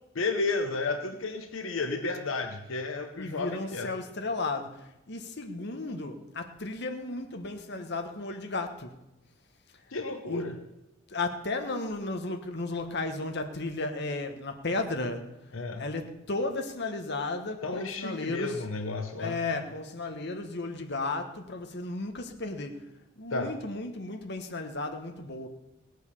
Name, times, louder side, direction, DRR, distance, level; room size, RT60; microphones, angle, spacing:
voice 1, 0.1-3.9 9.9-10.6 15.5-15.8 17.6-19.4 23.3-23.5, left 3 dB, 75° left, 1.0 m, -32 dB
voice 2, 3.2-8.9 10.3-10.5 11.1-15.3 15.8-18.6 19.2-22.9 23.2-25.5, left 2 dB, 55° left, 1.3 m, -34 dB
17.5 x 8.1 x 6.9 m
head